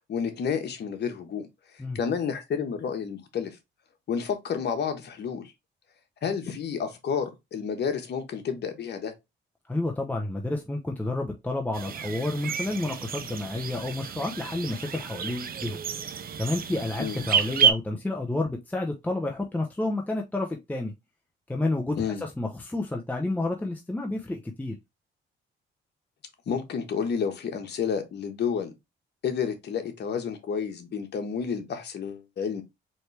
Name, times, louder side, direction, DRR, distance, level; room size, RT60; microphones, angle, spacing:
voice 1, 0.1-3.6 4.1-5.5 6.2-9.1 17.0-17.3 22.0-22.2 26.5-28.7 29.2-32.6, left 6 dB, 60° left, 1.2 m, -30 dB
voice 2, 9.7-15.8 16.4-20.9 21.5-24.8, left 2 dB, 10° left, 0.7 m, -30 dB
sound 1, 11.7-17.7, right 7 dB, 50° right, 0.6 m, -29 dB
4.2 x 3.3 x 3.2 m
cardioid pair, 90°, 20 cm